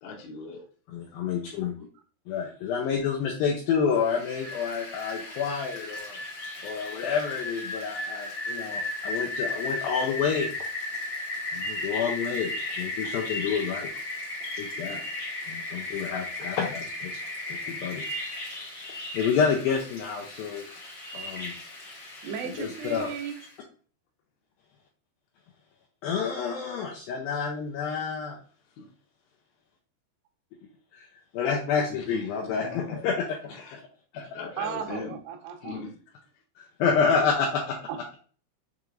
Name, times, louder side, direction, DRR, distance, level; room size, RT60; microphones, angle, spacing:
voice 1, 0.0-0.7 14.4-15.0 28.7-28.9 31.9-33.1 33.5-33.8 34.1-35.2 35.6-36.2, left 4 dB, 75° left, 2.7 m, -40 dB
voice 2, 0.9-1.7 2.3-6.2 6.6-10.5 11.5-13.9 14.6-15.0 15.5-17.2 17.5-18.0 19.1-20.7 21.1-21.5 22.4-23.1 26.0-28.4 30.9-31.1 31.3-33.3 33.7-33.8 36.6-37.8, left 6 dB, 90° left, 2.1 m, -28 dB
Rain, 4.0-23.5, left 2 dB, 40° left, 1.5 m, -35 dB
voice 3, 22.2-23.4 34.6-35.8 37.9-38.2, right 8 dB, 80° right, 2.7 m, -36 dB
6.7 x 3.0 x 2.5 m
omnidirectional pair, 4.9 m